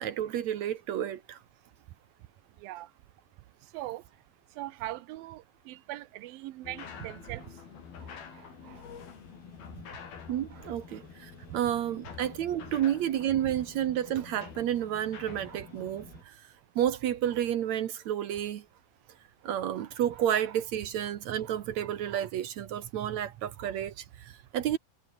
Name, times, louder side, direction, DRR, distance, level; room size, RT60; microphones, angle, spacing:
voice 1, 0.0-1.4 8.0-8.8 10.3-16.5 16.8-18.7 19.4-24.8, right 11 dB, 65° right, 2.0 m, -31 dB
voice 2, 1.5-9.0 9.5-10.3 11.2-11.7 13.5-13.6 16.1-16.7 19.0-19.3 24.4-24.5, right 16 dB, 80° right, 2.7 m, -44 dB
sound 1, 6.6-16.2, left 6 dB, 85° left, 5.9 m, -47 dB
omnidirectional pair, 4.2 m